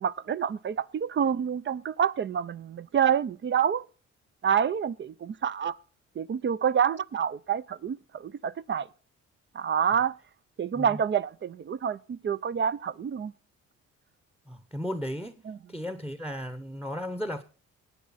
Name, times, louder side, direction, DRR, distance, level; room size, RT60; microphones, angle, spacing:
voice 1, 0.0-3.8 4.4-5.8 6.2-8.9 9.5-10.1 10.6-13.3 15.5-15.6, right 8 dB, 40° right, 0.5 m, -27 dB
voice 2, 14.5-15.3 15.7-17.4, equal, 5° right, 0.9 m, -35 dB
18.5 x 8.6 x 4.1 m
cardioid pair, 90°, 30 cm